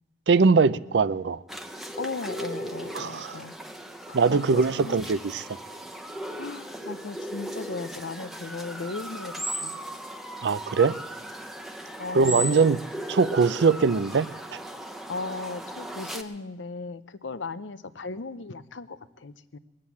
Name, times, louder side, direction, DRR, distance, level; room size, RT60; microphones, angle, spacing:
voice 1, 0.3-1.4 2.9-3.3 4.1-5.4 10.4-10.9 12.1-12.8 13.1-14.3, right 4 dB, 70° right, 0.5 m, -21 dB
sound 1, 1.5-16.2, equal, ahead, 0.9 m, -37 dB
voice 2, 2.0-3.5 4.1-5.0 6.4-9.8 12.0-12.5 15.1-19.6, left 3 dB, 90° left, 0.7 m, -37 dB
21.5 x 7.6 x 8.4 m
head